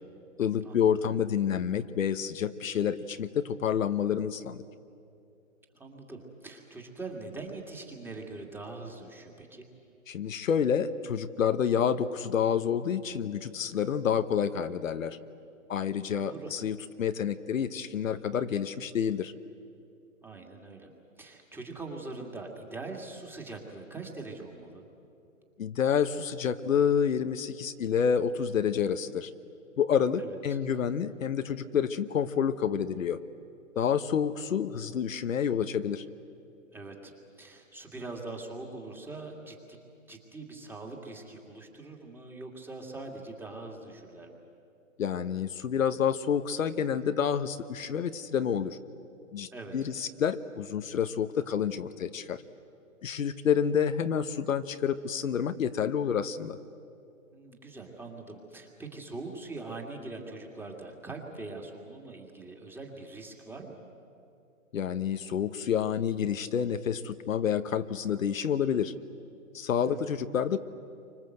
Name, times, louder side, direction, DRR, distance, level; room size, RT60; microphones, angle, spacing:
voice 1, 0.4-4.6 10.1-15.2 15.7-19.3 25.6-29.3 29.8-33.2 33.7-36.0 45.0-48.8 49.3-52.4 53.0-56.6 64.7-68.9 69.5-70.6, left 8 dB, 70° left, 10 dB, 1.2 m, -28 dB
voice 2, 5.7-9.7 16.2-16.5 20.2-20.9 21.2-24.8 30.2-30.6 36.7-37.1 37.4-39.8 40.1-44.4 49.5-49.7 57.3-63.8 69.8-70.1, right 3 dB, 5° right, 1 dB, 2.4 m, -42 dB
29.5 x 25.0 x 8.0 m, 2.6 s
hypercardioid pair, 145°, 42 cm